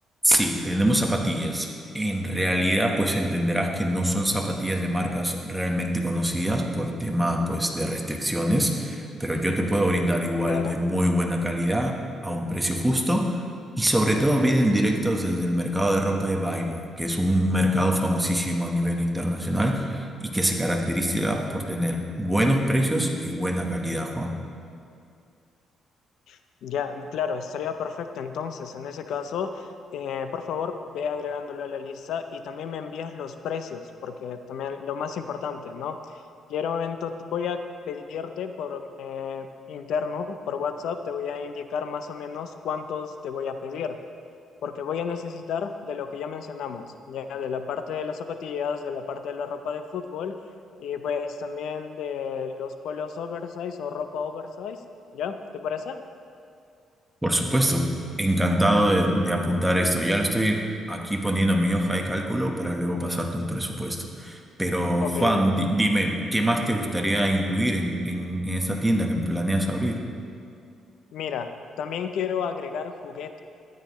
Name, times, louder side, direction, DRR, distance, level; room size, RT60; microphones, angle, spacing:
voice 1, 0.2-1.7 1.9-11.9 12.2-13.4 13.8-24.4 57.2-57.9 58.2-60.6 60.9-70.0, equal, 5° right, 1 dB, 1.2 m, -24 dB
voice 2, 10.4-10.8 26.3-36.0 36.5-37.6 37.9-44.0 44.6-50.4 50.8-54.8 55.1-56.0 65.0-65.6 71.1-73.4, left 6 dB, 75° left, 8 dB, 0.6 m, -32 dB
13.0 x 9.2 x 3.1 m, 2.4 s
cardioid pair, 90°, 0 cm